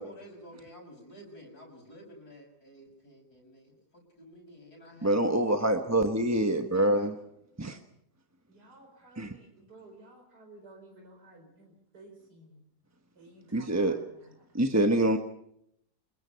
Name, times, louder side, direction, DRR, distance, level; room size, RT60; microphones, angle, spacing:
voice 1, 0.0-6.0 6.7-7.2, equal, 70° left, -1 dB, 6.5 m, -50 dB
voice 2, 5.0-7.1 7.6-7.8 9.2-9.3 13.5-14.0 14.5-15.2, right 1 dB, 10° right, 5 dB, 1.0 m, -25 dB
voice 3, 8.5-12.6 13.2-14.4, right 2 dB, 80° right, 2 dB, 5.0 m, -54 dB
26.5 x 22.5 x 5.8 m, 0.75 s
omnidirectional pair, 1.7 m